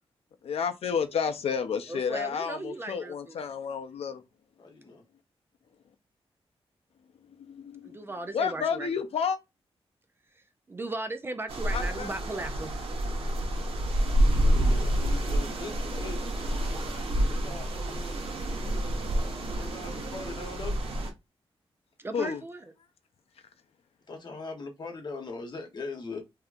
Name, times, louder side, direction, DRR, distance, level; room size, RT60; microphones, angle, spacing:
voice 1, 0.4-4.2 7.4-7.8 8.3-9.4 11.7-12.1 22.1-22.4, left 6 dB, 75° left, 0.5 m, -30 dB
voice 2, 1.9-3.4 7.8-8.9 10.4-12.8 22.0-22.6, right 2 dB, 20° right, 0.4 m, -37 dB
voice 3, 4.6-5.0 14.2-16.3 17.3-18.2 19.6-20.8 24.1-26.2, left 3 dB, 45° left, 0.9 m, -40 dB
sound 1, 11.5-21.1, right 1 dB, 60° right, 1.0 m, -28 dB
3.5 x 2.8 x 2.4 m
wide cardioid pair, 175°, 10 cm